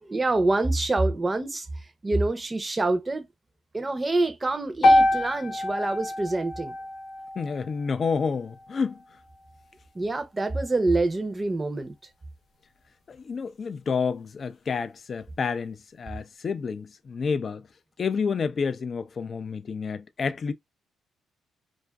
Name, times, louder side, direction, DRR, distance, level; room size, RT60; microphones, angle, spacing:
voice 1, 0.0-1.7 2.0-3.3 3.7-6.8 9.9-11.9, right 2 dB, 20° right, 0.6 m, -26 dB
sound 1, 4.8-9.0, left 1 dB, 70° left, 0.7 m, -25 dB
voice 2, 7.4-9.0 13.1-17.7 18.0-20.5, left 5 dB, 45° left, 0.4 m, -29 dB
2.5 x 2.4 x 2.2 m
cardioid pair, 90°, 0 cm